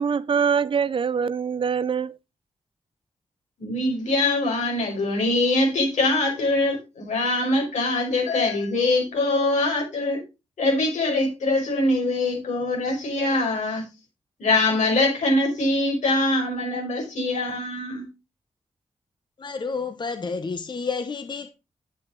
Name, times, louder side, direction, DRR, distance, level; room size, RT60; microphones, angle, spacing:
voice 1, 0.0-2.2, right 6 dB, 45° right, 0.5 m, -24 dB
voice 2, 3.6-10.2 10.6-13.8 14.4-18.1, left 2 dB, 85° left, 5.2 m, -23 dB
voice 3, 19.4-21.5, left 4 dB, 40° left, 0.9 m, -30 dB
9.3 x 8.5 x 3.8 m
cardioid pair, 80°, 12 cm